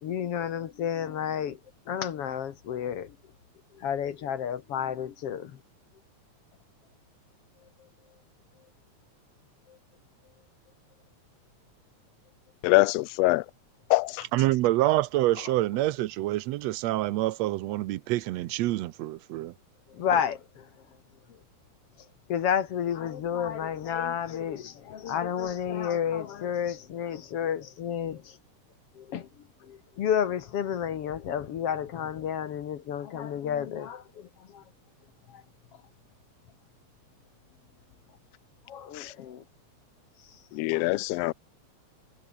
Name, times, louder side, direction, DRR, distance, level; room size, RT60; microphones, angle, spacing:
voice 1, 0.0-1.6 1.9-3.2 3.7-5.6 9.7-9.8 19.9-20.7 22.3-28.4 29.0-29.3 29.6-34.6 35.3-35.4 38.7-39.4 40.7-40.9, left 9 dB, 60° left, 2.0 m, -31 dB
voice 2, 12.6-13.4 13.9-14.3 38.9-39.1 40.5-41.3, left 21 dB, 75° left, 1.5 m, -24 dB
voice 3, 14.3-19.5, right 16 dB, 75° right, 1.7 m, -26 dB
omnidirectional pair, 3.4 m